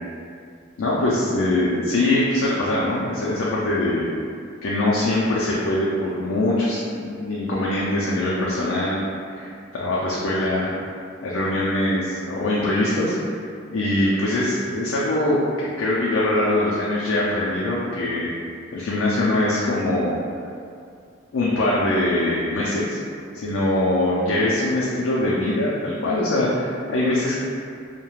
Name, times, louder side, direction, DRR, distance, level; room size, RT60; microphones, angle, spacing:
voice 1, 0.8-4.1 4.6-9.0 9.3-10.7 11.2-13.3 13.7-18.3 18.7-20.2 21.3-23.0 23.3-27.3, left 1 dB, 75° left, -6 dB, 0.4 m, -22 dB
2.3 x 2.1 x 3.0 m, 2.3 s
head